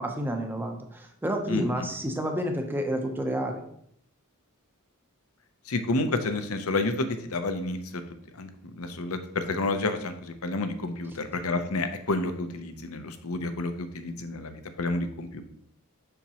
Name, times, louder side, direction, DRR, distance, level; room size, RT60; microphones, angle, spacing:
voice 1, 0.0-3.6, equal, 10° right, 4 dB, 0.8 m, -30 dB
voice 2, 5.7-7.1 7.3-7.8 8.4-8.5 8.8-15.4, left 2 dB, 70° left, 8 dB, 0.7 m, -30 dB
7.1 x 5.9 x 3.0 m, 0.70 s
head